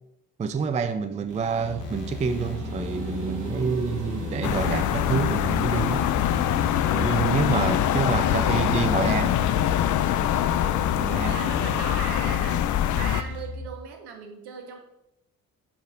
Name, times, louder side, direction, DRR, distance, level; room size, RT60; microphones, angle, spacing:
voice 1, 0.4-6.0 6.9-9.5 10.5-11.5, right 5 dB, 15° right, 9 dB, 0.4 m, -28 dB
sound 1, 1.3-13.5, right 4 dB, 40° right, 2.4 m, -41 dB
sound 2, 1.6-13.7, left 2 dB, 75° left, 1.1 m, -35 dB
sound 3, 4.4-13.2, left 12 dB, 45° left, 0.5 m, -24 dB
voice 2, 7.1-9.1 11.2-14.8, right 5 dB, 60° right, 4 dB, 1.4 m, -39 dB
10.0 x 4.1 x 3.8 m, 0.86 s
figure-of-eight pair, 45°, 45 cm